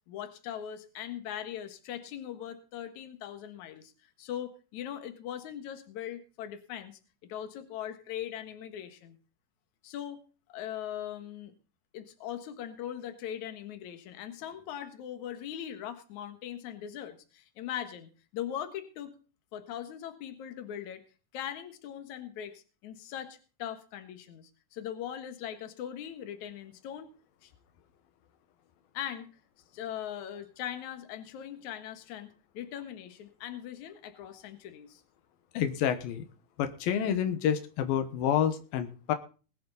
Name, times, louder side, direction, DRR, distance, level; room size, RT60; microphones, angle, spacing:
voice 1, 0.1-9.2 9.8-10.2 10.5-11.5 11.9-19.1 19.5-21.0 21.3-27.1 27.4-27.5 28.9-29.3 29.7-32.3 32.5-35.0, left 10 dB, 60° left, 8 dB, 2.7 m, -40 dB
voice 2, 35.5-36.2 36.6-39.1, left 9 dB, 90° left, 8 dB, 3.0 m, -28 dB
20.0 x 9.7 x 4.0 m, 0.36 s
omnidirectional pair, 4.0 m